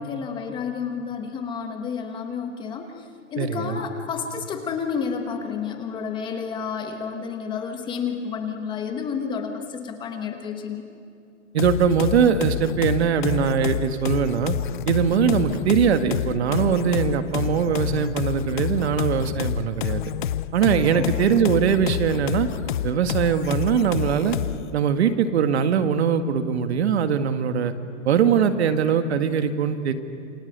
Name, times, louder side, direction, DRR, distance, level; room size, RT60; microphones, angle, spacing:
voice 1, 0.0-10.8 20.9-21.1, left 6 dB, 10° left, 5 dB, 1.2 m, -30 dB
voice 2, 3.4-3.8 11.5-14.6 14.9-20.0 20.5-22.5 22.8-24.4 24.7-27.7 28.0-29.9, right 7 dB, 55° right, 9 dB, 1.9 m, -21 dB
sound 1, 11.6-24.7, left 11 dB, 40° left, 0.6 m, -28 dB
28.5 x 25.0 x 8.2 m, 2.4 s
hypercardioid pair, 165°, 38 cm